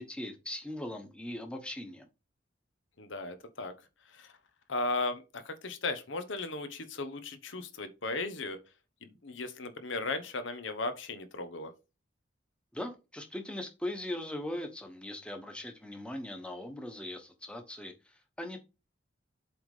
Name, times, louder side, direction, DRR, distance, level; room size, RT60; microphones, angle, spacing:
voice 1, 0.0-2.1 12.7-18.6, left 1 dB, 5° left, 1.1 m, -40 dB
voice 2, 3.0-3.7 4.1-4.3 4.7-8.6 9.0-11.7, left 3 dB, 75° left, 1.0 m, -36 dB
7.8 x 3.5 x 4.9 m
head